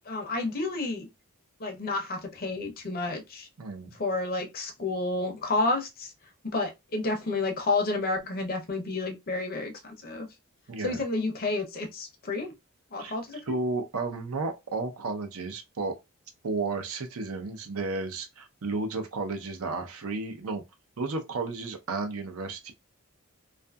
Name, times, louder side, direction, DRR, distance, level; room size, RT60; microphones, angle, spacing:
voice 1, 0.1-1.1 1.6-3.5 3.9-6.1 6.4-10.3 10.8-12.5 12.9-13.6, left 3 dB, 45° left, 0.6 m, -30 dB
voice 2, 3.6-4.0 10.7-11.0 13.0-13.1 13.5-15.9 16.4-20.6 21.0-22.7, right 3 dB, 90° right, 0.6 m, -33 dB
2.6 x 2.4 x 2.2 m
head